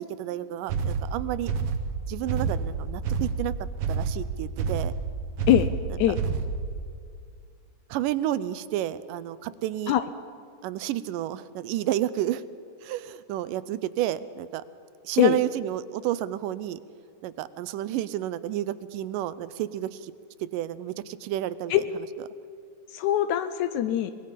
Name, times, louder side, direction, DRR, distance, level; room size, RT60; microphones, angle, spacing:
voice 1, 0.0-1.5 2.1-3.6 3.9-4.9 7.9-9.9 10.6-12.4 12.8-14.6 15.0-16.8 17.2-20.1 20.4-21.7, right 13 dB, 85° right, 15 dB, 2.2 m, -30 dB
sound 1, 0.7-6.8, right 5 dB, 65° right, 1.5 m, -28 dB
voice 2, 22.9-24.1, left 12 dB, 75° left, 11 dB, 1.9 m, -22 dB
24.0 x 21.0 x 5.3 m, 2.3 s
omnidirectional pair, 3.8 m